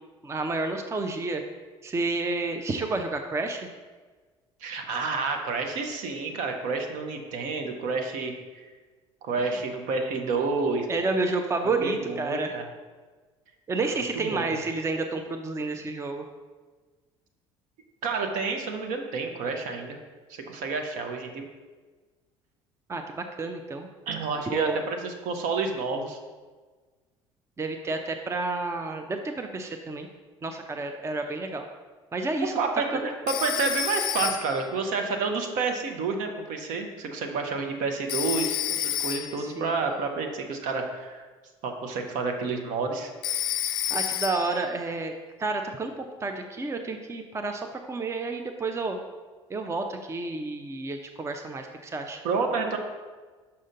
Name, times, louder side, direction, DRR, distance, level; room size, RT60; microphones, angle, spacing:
voice 1, 0.2-1.4 1.8-3.7 9.4-9.6 10.9-12.5 13.7-16.3 22.9-23.9 24.5-24.8 27.6-30.1 30.4-31.7 32.1-32.6 32.9-33.0 39.4-39.8 43.9-45.1 45.4-49.0 49.5-52.2, right 3 dB, 20° right, 5 dB, 0.6 m, -30 dB
voice 2, 4.6-8.7 9.2-11.1 11.6-12.7 14.1-14.6 18.0-20.0 20.3-21.4 24.1-26.2 32.6-41.3 41.6-43.1 52.2-52.8, right 4 dB, 55° right, 4 dB, 0.9 m, -29 dB
Telephone, 33.3-34.7 38.1-39.5 43.2-44.6, left 12 dB, 60° left, 0.5 m, -30 dB
6.4 x 5.8 x 3.8 m, 1.4 s
figure-of-eight pair, 55°, 16 cm